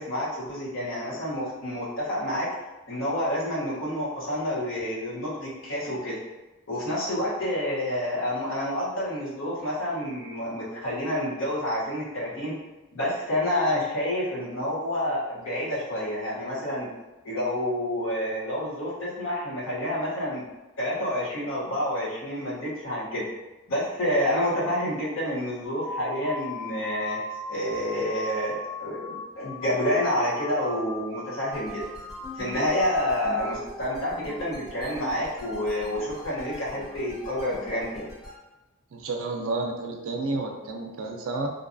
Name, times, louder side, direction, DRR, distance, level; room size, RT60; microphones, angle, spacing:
voice 1, 0.0-2.5 2.9-6.2 6.7-12.5 12.9-16.9 17.2-20.4 20.8-23.2 23.7-27.2 27.5-31.8 32.3-38.1, left 1 dB, 65° left, -6 dB, 0.8 m, -28 dB
sound 1, 25.6-33.6, left 1 dB, 85° left, 0.4 m, -38 dB
sound 2, 31.5-38.4, left 1 dB, 20° left, 0.9 m, -42 dB
voice 2, 38.9-41.5, right 2 dB, 70° right, 2 dB, 0.4 m, -30 dB
2.6 x 2.3 x 2.5 m, 1.1 s
head